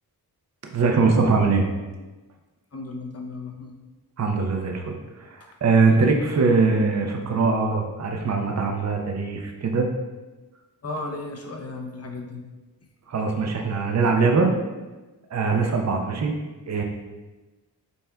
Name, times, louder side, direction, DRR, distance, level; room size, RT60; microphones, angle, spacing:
voice 1, 0.6-1.6 4.2-5.0 5.3-9.9 13.1-14.5 15.3-16.3 16.7-16.8, right 4 dB, 40° right, 2 dB, 0.7 m, -22 dB
voice 2, 2.7-3.7 5.4-5.5 10.8-12.4, left 2 dB, 40° left, 2 dB, 0.8 m, -35 dB
5.6 x 4.2 x 2.3 m, 1.2 s
cardioid pair, 70°, 40 cm